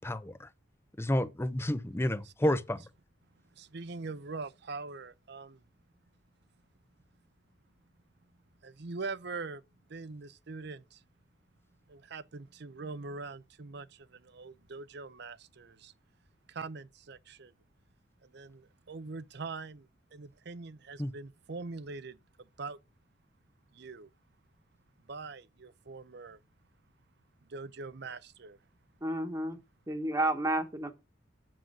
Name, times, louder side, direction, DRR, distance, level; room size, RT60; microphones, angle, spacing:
voice 1, 0.0-0.5 1.0-2.8 21.0-21.1, left 1 dB, 15° left, 0.7 m, -30 dB
voice 2, 3.6-5.6 8.6-9.6 9.9-11.0 11.9-15.9 16.5-17.5 18.2-22.8 23.7-24.1 25.1-26.4 27.4-28.6 30.2-30.3, right 4 dB, 65° right, 0.7 m, -43 dB
voice 3, 29.0-29.6 29.9-30.9, right 1 dB, 20° right, 1.4 m, -31 dB
7.6 x 7.5 x 6.4 m
head